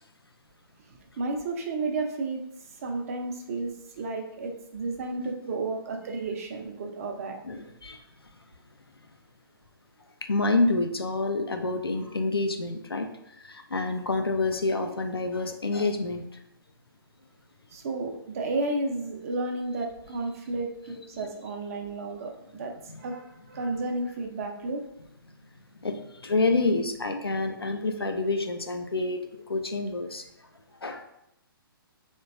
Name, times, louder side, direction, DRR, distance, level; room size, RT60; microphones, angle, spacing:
voice 1, 1.2-2.4 2.8-7.4 17.7-24.8, right 2 dB, 40° right, 3 dB, 0.4 m, -32 dB
voice 2, 7.4-8.0 10.2-13.1 13.4-16.3 21.1-21.3 22.9-23.0 25.8-29.2 29.5-30.2 30.8-31.0, left 3 dB, 90° left, 6 dB, 0.4 m, -28 dB
3.2 x 2.2 x 2.4 m, 0.81 s
figure-of-eight pair, 130°, 12 cm